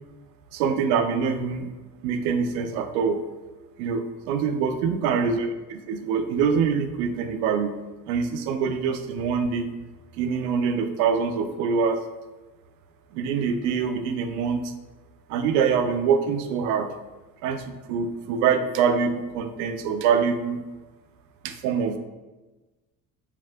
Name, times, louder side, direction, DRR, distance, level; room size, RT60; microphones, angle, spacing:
voice 1, 0.5-1.7 2.0-3.2 3.8-7.8 8.1-9.7 10.2-12.0 13.1-14.7 15.3-16.9 17.4-20.6 21.4-22.0, right 6 dB, 60° right, 8 dB, 0.5 m, -24 dB
5.6 x 2.4 x 2.3 m, 1.2 s
figure-of-eight pair, 55°, 49 cm